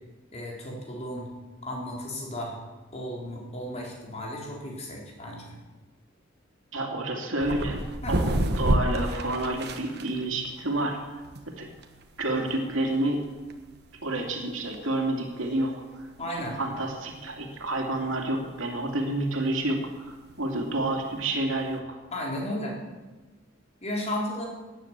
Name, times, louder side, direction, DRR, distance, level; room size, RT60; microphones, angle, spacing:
voice 1, 0.3-1.3 1.6-2.5 2.9-5.6 8.0-8.2 16.2-16.6 22.1-22.8 23.8-24.5, left 1 dB, 35° left, -2 dB, 4.0 m, -34 dB
voice 2, 6.7-7.8 8.1-8.3 8.6-11.2 11.5-11.7 12.2-13.2 14.0-16.1 16.6-22.0, right 2 dB, 75° right, 2 dB, 2.7 m, -29 dB
sound 1, 7.4-21.8, right 1 dB, 55° right, 1.3 m, -33 dB
17.0 x 10.0 x 7.5 m, 1.2 s
head